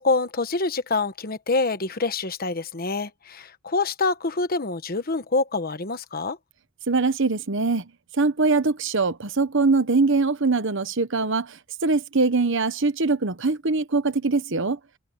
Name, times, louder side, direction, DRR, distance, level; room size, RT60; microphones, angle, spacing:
voice 1, 0.0-6.4, left 3 dB, 45° left, 1.2 m, -26 dB
voice 2, 6.9-7.9 8.2-14.8, right 3 dB, 60° right, 1.1 m, -22 dB
head